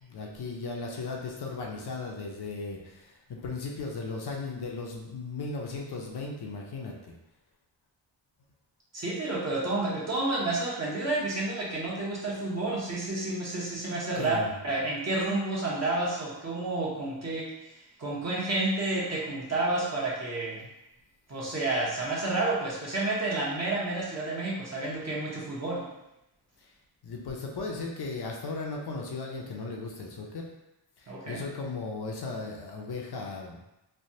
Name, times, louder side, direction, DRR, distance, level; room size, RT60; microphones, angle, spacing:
voice 1, 0.0-6.9 14.2-14.5 27.0-30.5 31.0-33.6, left 3 dB, 60° left, 0 dB, 0.7 m, -36 dB
voice 2, 8.9-14.4 14.6-17.5 18.0-20.7 21.3-25.8 31.1-31.4, right 2 dB, 35° right, -5 dB, 1.0 m, -30 dB
3.2 x 2.2 x 2.7 m, 0.89 s
cardioid pair, 80°, 44 cm